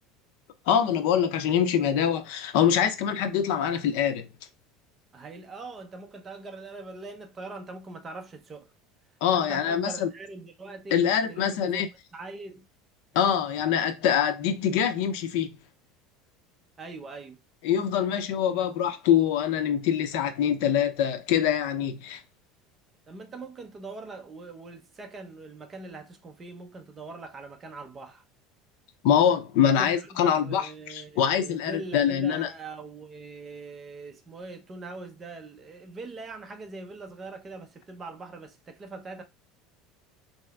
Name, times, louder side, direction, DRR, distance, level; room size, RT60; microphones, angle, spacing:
voice 1, 0.7-4.3 9.2-10.1 10.9-11.9 13.1-15.5 17.6-22.2 29.0-32.5, left 9 dB, 70° left, 0.7 m, -24 dB
voice 2, 5.1-8.7 9.3-11.9 12.1-12.6 16.8-17.4 23.1-28.2 29.6-39.2, right 3 dB, 20° right, 0.6 m, -42 dB
3.3 x 2.8 x 3.6 m
cardioid pair, 165°, 0 cm